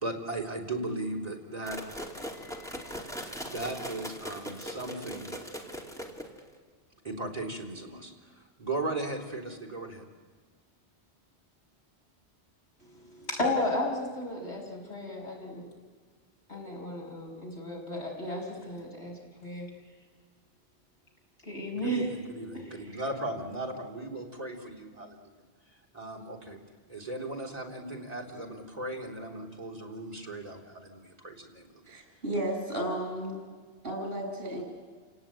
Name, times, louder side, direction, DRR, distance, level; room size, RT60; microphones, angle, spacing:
voice 1, 0.0-1.8 2.3-2.9 3.4-5.3 7.0-10.0 21.7-25.4 25.7-26.6 26.9-31.8, right 2 dB, 35° right, -1 dB, 3.8 m, -37 dB
sound 1, 1.7-6.5, equal, 5° left, 2.7 m, -40 dB
voice 2, 12.8-15.6 16.5-19.1 19.4-19.7 21.4-22.1 22.5-22.7, left 1 dB, 80° left, -1 dB, 6.2 m, -33 dB
voice 3, 31.8-33.4 33.8-34.6, right 1 dB, 60° right, 2 dB, 7.7 m, -33 dB
29.0 x 18.0 x 9.2 m, 1.5 s
omnidirectional pair, 1.1 m